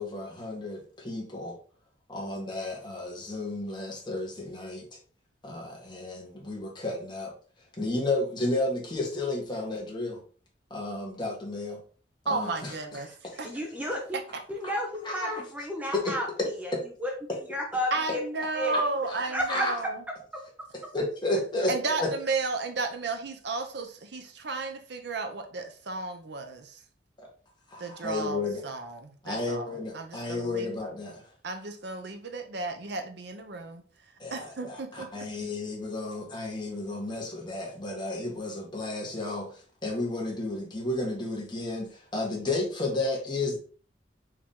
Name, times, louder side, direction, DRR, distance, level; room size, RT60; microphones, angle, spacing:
voice 1, 0.0-1.6 2.1-4.9 5.4-7.3 7.8-10.2 10.7-11.8 12.2-12.7 15.0-15.4 15.9-16.1 18.7-18.8 19.1-19.2 19.5-19.7 20.9-21.7 22.0-22.1 27.7-28.6 29.2-31.2 34.2-43.6, left 2 dB, 25° left, -1 dB, 1.5 m, -32 dB
voice 2, 12.3-13.1 13.4-13.5 17.9-20.0 21.7-26.8 27.8-30.7 31.4-33.8 34.3-35.5, right 3 dB, 70° right, 6 dB, 0.8 m, -33 dB
voice 3, 13.4-14.2 14.5-16.3 16.6-16.7 17.0-17.1 17.5-18.2 18.5-18.9 19.3-19.7, equal, 10° right, 1 dB, 0.7 m, -32 dB
4.8 x 2.9 x 3.7 m, 0.42 s
head